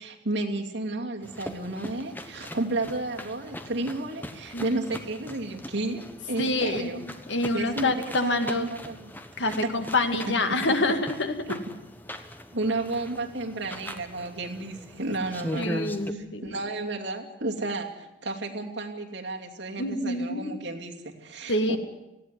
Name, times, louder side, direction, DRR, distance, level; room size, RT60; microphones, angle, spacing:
voice 1, 0.0-7.0 7.5-9.7 12.5-15.9 16.1-21.8, right 2 dB, 80° right, 1 dB, 2.8 m, -32 dB
sound 1, 1.2-16.1, left 1 dB, 10° left, 1.2 m, -40 dB
voice 2, 6.4-8.7 9.4-11.6 15.5-16.6 19.8-20.6 21.5-21.8, left 2 dB, 85° left, 7 dB, 2.1 m, -27 dB
19.0 x 15.5 x 9.5 m, 0.94 s
head